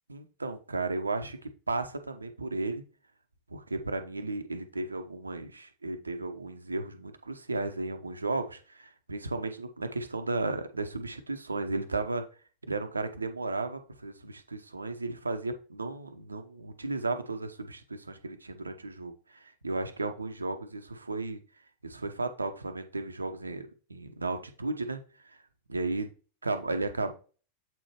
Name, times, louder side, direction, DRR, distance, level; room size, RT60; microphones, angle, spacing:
voice 1, 0.1-1.4 1.7-2.8 3.5-12.2 12.7-21.4 21.8-25.4 25.7-26.1 26.4-27.1, right 3 dB, 80° right, 8 dB, 0.7 m, -34 dB
7.7 x 4.5 x 2.9 m, 0.37 s
figure-of-eight pair, 90°, 0 cm